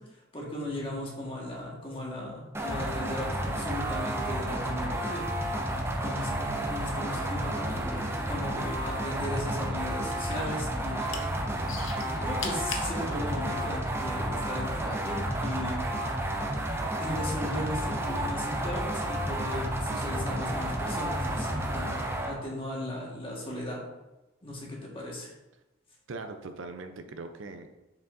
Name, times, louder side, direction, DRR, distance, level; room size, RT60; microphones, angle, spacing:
voice 1, 0.0-5.2 5.9-11.3 12.0-15.8 17.0-23.8 24.4-25.3, left 1 dB, 25° left, -4 dB, 1.5 m, -37 dB
sound 1, 2.5-22.3, right 1 dB, 10° right, 0.6 m, -31 dB
sound 2, 8.1-9.2 9.5-10.5 10.9-11.2 11.7-12.9 13.6-13.7, left 6 dB, 70° left, 0.8 m, -38 dB
voice 2, 26.1-27.8, right 3 dB, 65° right, 7 dB, 0.5 m, -40 dB
6.8 x 6.0 x 2.6 m, 1.0 s
head